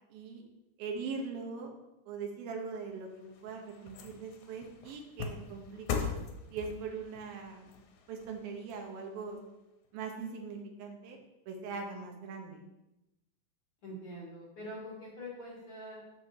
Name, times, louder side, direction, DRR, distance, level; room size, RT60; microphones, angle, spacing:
voice 1, 0.1-0.4 0.8-1.7 2.1-6.2 6.5-7.7 8.1-9.4 9.9-11.2 11.5-12.6, right 5 dB, 70° right, 2 dB, 2.7 m, -41 dB
sound 1, 2.9-9.4 9.9-10.0, left 6 dB, 70° left, 2.3 m, -41 dB
voice 2, 13.8-16.2, equal, 50° left, -5 dB, 1.6 m, -44 dB
6.4 x 6.4 x 4.7 m, 0.96 s
omnidirectional pair, 4.6 m